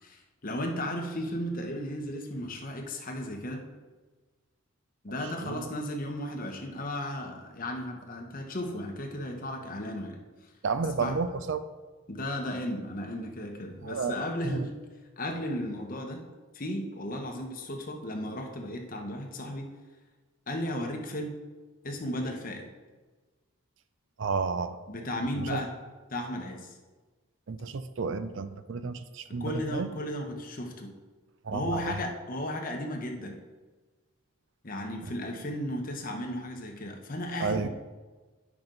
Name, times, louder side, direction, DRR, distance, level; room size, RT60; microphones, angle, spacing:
voice 1, 0.0-3.7 5.0-10.2 11.0-11.1 12.1-14.7 15.2-16.3 16.5-19.7 20.5-21.3 21.8-22.7 24.9-25.7 26.1-26.7 29.4-30.9 31.5-33.4 34.6-37.7, left 1 dB, 40° left, 2 dB, 1.0 m, -35 dB
voice 2, 5.2-5.7 10.6-11.7 13.8-14.2 14.4-14.7 24.2-24.8 25.4-25.6 27.5-29.9 31.4-32.0 35.0-35.1 37.4-37.7, right 4 dB, 60° right, 11 dB, 0.4 m, -32 dB
9.0 x 6.0 x 3.9 m, 1.3 s
head